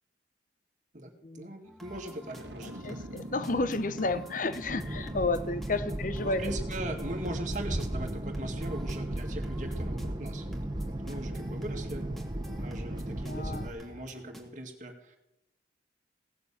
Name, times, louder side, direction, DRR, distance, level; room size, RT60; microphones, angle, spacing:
voice 1, 0.9-3.0 5.8-6.0 6.2-10.5 10.8-12.0 12.6-15.2, right 1 dB, 45° right, 3 dB, 2.1 m, -40 dB
sound 1, 1.6-14.4, equal, ahead, 2.2 m, -50 dB
Boom, 2.3-5.5, right 1 dB, 85° right, 1.6 m, -44 dB
voice 2, 2.8-6.4 13.1-13.7, left 2 dB, 45° left, 12 dB, 0.8 m, -31 dB
sound 2, 4.7-13.7, right 1 dB, 25° right, 1.0 m, -35 dB
17.5 x 6.8 x 8.5 m, 0.87 s
head